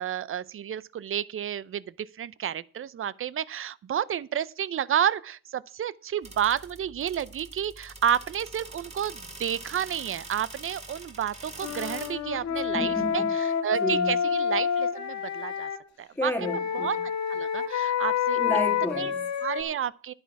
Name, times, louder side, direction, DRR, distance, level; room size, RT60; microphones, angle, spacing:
voice 1, 0.0-15.7 16.0-16.3 16.7-17.0 17.3-18.4 19.0-19.1 19.4-20.1, right 9 dB, 45° right, 0.6 m, -30 dB
sound 1, 6.2-13.1, right 2 dB, 20° right, 2.8 m, -44 dB
Wind instrument woodwind instrument, 11.6-15.8 16.4-19.6, left 7 dB, 65° left, 1.7 m, -28 dB
voice 2, 12.7-13.3 13.8-14.2 16.2-16.9 18.4-19.3, left 1 dB, 5° left, 2.0 m, -31 dB
10.0 x 9.5 x 4.6 m
cardioid pair, 90°, 30 cm